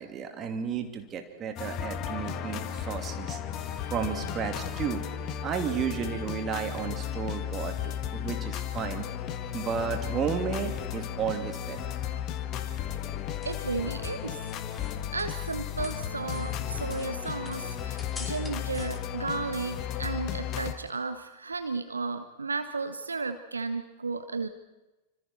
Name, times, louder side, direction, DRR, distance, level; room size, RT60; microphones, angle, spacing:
voice 1, 0.0-3.4 3.9-5.0 5.4-9.1 9.5-12.0, right 7 dB, 25° right, 4 dB, 2.9 m, -33 dB
sound 1, 1.6-20.7, left 9 dB, 35° left, 1.6 m, -34 dB
sound 2, 13.1-15.6 15.8-19.0, left 4 dB, 15° left, 2.9 m, -47 dB
voice 2, 13.4-14.4 15.1-24.5, right 4 dB, 75° right, 10 dB, 1.0 m, -34 dB
27.5 x 26.0 x 4.5 m, 1.0 s
figure-of-eight pair, 90°, 0 cm